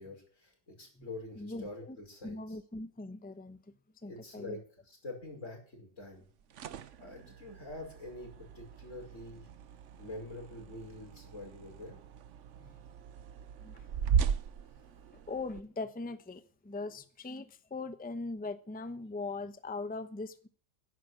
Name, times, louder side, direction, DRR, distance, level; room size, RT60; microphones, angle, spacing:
voice 1, 0.0-2.6 4.1-4.6 4.8-6.2 7.0-9.5 10.0-12.0, left 2 dB, 45° left, 5.9 m, -46 dB
voice 2, 1.4-2.0 2.2-3.6 4.0-4.6 12.6-12.7 13.6-13.8 15.1-20.5, left 3 dB, 10° left, 0.6 m, -40 dB
sound 1, 6.2-15.6, right 7 dB, 55° right, 0.9 m, -38 dB
11.0 x 9.6 x 7.9 m
omnidirectional pair, 1.7 m